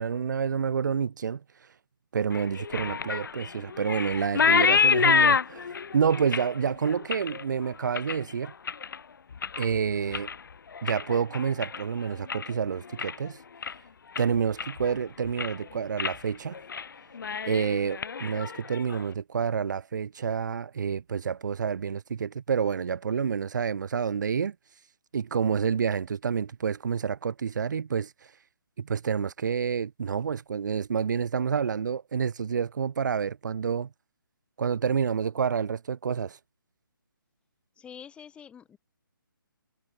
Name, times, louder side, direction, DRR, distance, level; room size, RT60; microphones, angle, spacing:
voice 1, 0.0-1.4 2.1-8.5 9.6-10.3 10.8-13.4 14.2-16.6 17.4-24.5 25.1-28.3 28.8-33.9 34.6-36.4, right 6 dB, 55° right, 3.0 m, -28 dB
sound 1, 2.3-9.0 9.3-9.8 10.1-12.5 12.8-13.3 13.6-13.7 14.1-14.9 15.2-15.6 16.0-16.2 16.5-16.9 17.1-19.0, left 6 dB, 65° left, 0.9 m, -28 dB
voice 2, 37.8-38.8, left 8 dB, 10° left, 4.0 m, -46 dB
figure-of-eight pair, 150°, 12 cm